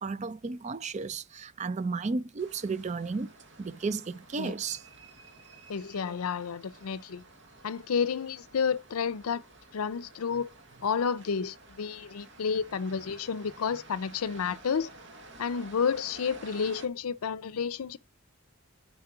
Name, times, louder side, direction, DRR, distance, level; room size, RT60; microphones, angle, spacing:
voice 1, 0.0-3.3 3.6-4.8, right 4 dB, 30° right, 0.4 m, -33 dB
sound 1, 2.4-16.9, right 2 dB, 55° right, 1.5 m, -52 dB
voice 2, 5.7-7.2 7.6-9.4 9.7-10.5 10.8-14.9 15.4-18.0, left 6 dB, 85° left, 0.5 m, -30 dB
7.4 x 5.2 x 5.8 m
head